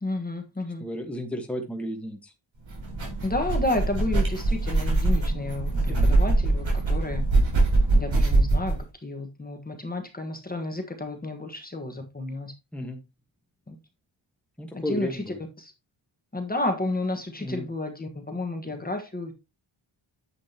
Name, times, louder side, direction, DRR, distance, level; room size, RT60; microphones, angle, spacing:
voice 1, 0.0-0.9 3.2-7.2 7.9-12.5 13.7-13.8 14.7-15.2 15.6-15.7 16.3-19.3, left 2 dB, 20° left, 1.4 m, -31 dB
voice 2, 0.8-2.3 5.9-6.2 12.7-13.0 14.6-15.4 17.4-17.7, equal, 5° left, 1.3 m, -33 dB
sound 1, 2.7-8.8, right 2 dB, 70° right, 4.5 m, -23 dB
9.9 x 7.9 x 2.9 m
wide cardioid pair, 170°, 48 cm